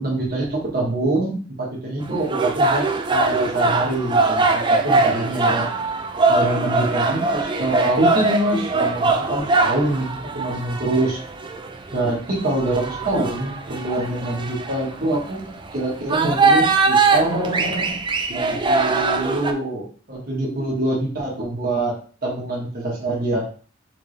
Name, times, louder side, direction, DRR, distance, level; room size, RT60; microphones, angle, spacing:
voice 1, 0.0-5.7 6.3-11.2 11.9-18.0 18.3-23.5, right 2 dB, 50° right, -4 dB, 1.4 m, -25 dB
sound 1, 2.0-19.5, right 3 dB, 25° right, 0.4 m, -22 dB
4.6 x 3.4 x 3.2 m, 0.39 s
head